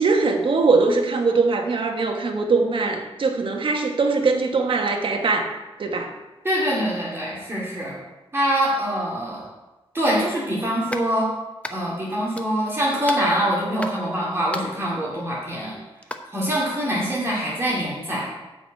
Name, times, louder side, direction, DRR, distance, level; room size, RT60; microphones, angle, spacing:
voice 1, 0.0-5.5 5.8-6.1, right 4 dB, 55° right, 3 dB, 1.3 m, -21 dB
voice 2, 6.4-8.0 8.3-9.4 9.9-11.3 11.7-15.8 16.3-18.3, equal, 25° right, -5 dB, 2.2 m, -24 dB
sound 1, 10.9-11.1 11.6-12.1 12.4-12.8 13.1-14.0 14.5-14.8 16.0-16.2, left 1 dB, 15° left, 0.7 m, -34 dB
9.8 x 4.8 x 7.7 m, 1.1 s
wide cardioid pair, 130°, 10 cm